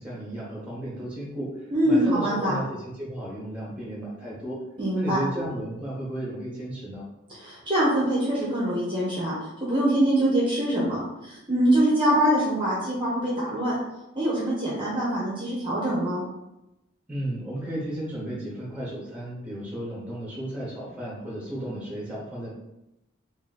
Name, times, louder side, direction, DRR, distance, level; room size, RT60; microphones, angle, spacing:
voice 1, 0.0-4.6 4.9-7.0 17.1-22.5, right 1 dB, 5° right, -5 dB, 1.1 m, -34 dB
voice 2, 1.7-2.5 4.8-5.2 7.4-9.3 9.6-13.8 14.1-16.2, right 1 dB, 25° right, -7 dB, 0.9 m, -24 dB
3.0 x 2.7 x 4.0 m, 0.91 s
head